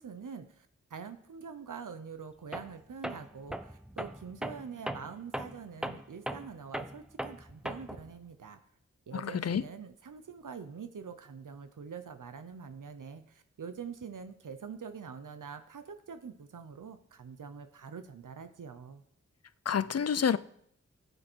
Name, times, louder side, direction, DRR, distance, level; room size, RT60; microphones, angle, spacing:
voice 1, 0.0-8.6 9.1-19.0, right 6 dB, 90° right, 0.8 m, -45 dB
Tools, 2.5-2.8 3.0-8.1, right 1 dB, ahead, 0.7 m, -39 dB
voice 2, 9.1-9.6 19.7-20.4, left 7 dB, 55° left, 0.5 m, -28 dB
14.0 x 8.1 x 4.5 m
wide cardioid pair, 50°, 31 cm